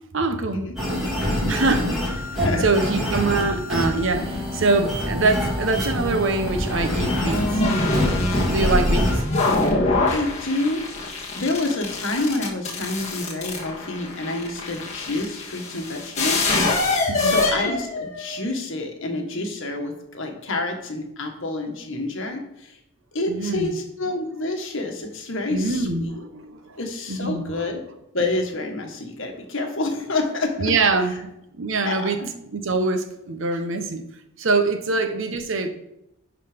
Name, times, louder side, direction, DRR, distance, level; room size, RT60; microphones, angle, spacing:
voice 1, 0.1-0.6 0.9-1.0 1.5-7.6 8.5-9.2 17.1-17.4 23.3-23.8 25.5-26.8 27.1-27.7 30.6-31.3 31.6-32.2 32.5-34.0 34.4-35.7, right 3 dB, 60° right, 8 dB, 0.9 m, -24 dB
sound 1, 0.8-9.2, left 1 dB, ahead, 2.7 m, -26 dB
sound 2, 6.4-18.4, left 2 dB, 30° left, 1.8 m, -24 dB
voice 2, 9.8-10.8 11.4-22.8 23.1-26.1 26.8-27.8 28.1-30.7 31.8-32.3, left 2 dB, 60° left, 3 dB, 1.6 m, -28 dB
11.0 x 4.1 x 5.1 m, 0.85 s
head